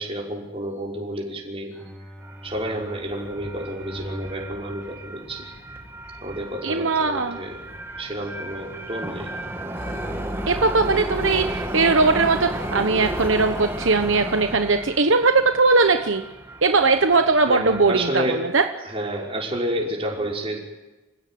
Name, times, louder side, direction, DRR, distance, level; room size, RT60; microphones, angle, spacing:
voice 1, 0.0-1.7 2.4-5.5 6.2-7.6 8.0-9.3 17.5-18.4 18.8-20.6, right 1 dB, 30° right, -2 dB, 5.9 m, -30 dB
Bowed string instrument, 1.7-6.1, equal, 5° left, 3.7 m, -41 dB
sound 1, 2.2-18.1, right 1 dB, 10° right, 2.2 m, -34 dB
voice 2, 6.6-7.4 10.5-16.2 16.6-18.6, right 3 dB, 70° right, 7 dB, 1.1 m, -19 dB
sound 2, 9.7-15.0, left 1 dB, 70° left, 5.8 m, -38 dB
28.5 x 16.5 x 9.4 m, 1.1 s
head